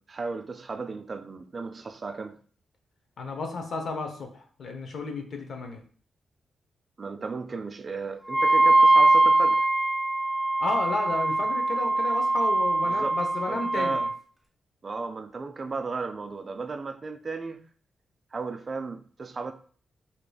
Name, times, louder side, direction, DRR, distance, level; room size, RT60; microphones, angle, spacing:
voice 1, 0.0-2.4 7.0-9.7 12.8-13.2 13.5-14.0 14.8-17.7 18.3-19.5, right 4 dB, 35° right, 0.4 m, -35 dB
voice 2, 3.2-5.8 10.6-14.1, left 3 dB, 65° left, 0.8 m, -33 dB
Wind instrument woodwind instrument, 8.3-14.1, right 2 dB, 10° right, 0.8 m, -22 dB
4.7 x 2.9 x 2.3 m
cardioid pair, 110°, 0 cm